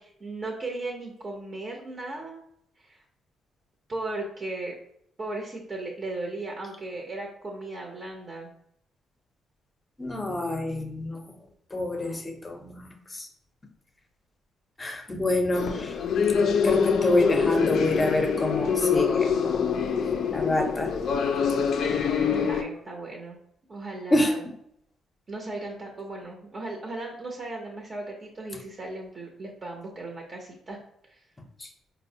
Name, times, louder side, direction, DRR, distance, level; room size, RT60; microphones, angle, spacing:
voice 1, 0.0-2.4 2.8-3.0 3.9-4.7 5.2-8.5 14.8-15.0 22.3-23.4 23.7-24.4 25.3-30.8 31.1-31.2, right 2 dB, 40° right, 0 dB, 0.6 m, -36 dB
voice 2, 10.0-11.2 11.7-13.3 14.8-16.0 16.6-19.4 20.3-20.9 24.1-24.3 31.6-31.7, left 1 dB, 20° left, 5 dB, 0.6 m, -27 dB
sound 1, 15.5-22.6, left 6 dB, 65° left, 0.3 m, -25 dB
4.2 x 2.0 x 2.7 m, 0.71 s
cardioid pair, 90°, 0 cm